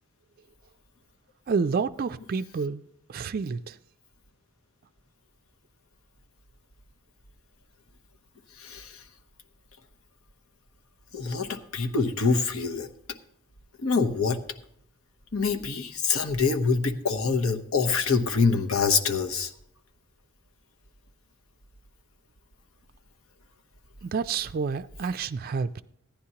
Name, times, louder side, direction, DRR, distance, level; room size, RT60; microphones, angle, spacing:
voice 1, 1.5-2.8 3.1-3.8 24.0-25.8, right 5 dB, 45° right, 0.3 m, -29 dB
voice 2, 8.6-9.0 11.1-12.9 13.8-14.4 15.3-19.5, left 4 dB, 85° left, 1.0 m, -25 dB
15.5 x 10.5 x 2.8 m
head